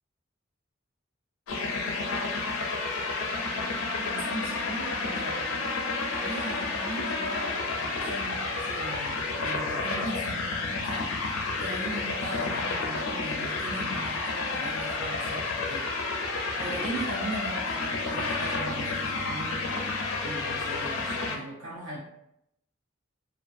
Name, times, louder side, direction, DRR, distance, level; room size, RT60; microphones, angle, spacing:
sound 1, 1.5-21.4, left 3 dB, 90° left, 0.4 m, -31 dB
voice 1, 4.0-5.6 6.1-15.9 16.6-19.8 20.2-22.0, right 1 dB, 70° right, -7 dB, 0.6 m, -38 dB
2.3 x 2.2 x 2.5 m, 0.80 s
head